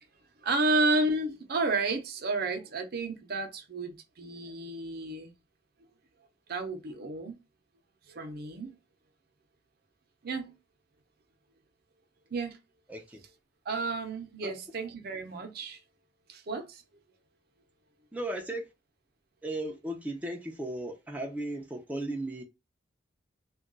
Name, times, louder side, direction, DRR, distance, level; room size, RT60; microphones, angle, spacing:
voice 1, 0.4-5.3 6.5-7.4 8.1-8.7 10.2-10.6 12.3-12.6 13.7-15.8 16.3-16.8, right 2 dB, 60° right, 0.6 m, -31 dB
voice 2, 18.1-18.7 19.4-22.4, right 1 dB, 10° right, 0.4 m, -36 dB
2.3 x 2.2 x 3.8 m
head